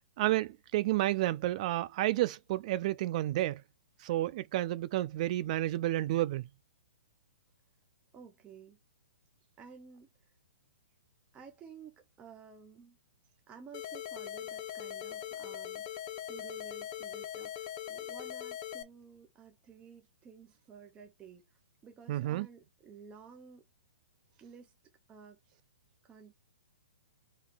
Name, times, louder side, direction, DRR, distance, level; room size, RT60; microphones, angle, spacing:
voice 1, 0.2-3.6 4.0-6.4 22.1-22.5, right 15 dB, 45° right, 0.3 m, -30 dB
voice 2, 8.1-8.8 9.6-10.3 11.3-13.0 13.5-23.6 24.4-24.7 25.1-25.4 26.0-26.3, right 6 dB, 20° right, 0.8 m, -53 dB
sound 1, 13.7-18.8, left 11 dB, 40° left, 0.8 m, -41 dB
4.3 x 3.3 x 3.4 m
hypercardioid pair, 125°, 6 cm